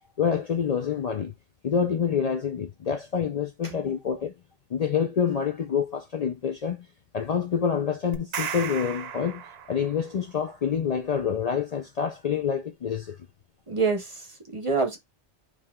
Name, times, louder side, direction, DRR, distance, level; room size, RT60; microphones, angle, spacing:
voice 1, 0.2-1.3 1.6-4.3 4.7-6.9 7.1-13.2, left 7 dB, 50° left, 0.5 m, -27 dB
sound 1, 8.1-10.1, right 7 dB, 75° right, 0.9 m, -35 dB
voice 2, 13.7-15.0, right 4 dB, 35° right, 0.8 m, -27 dB
5.0 x 2.8 x 3.6 m
omnidirectional pair, 1.1 m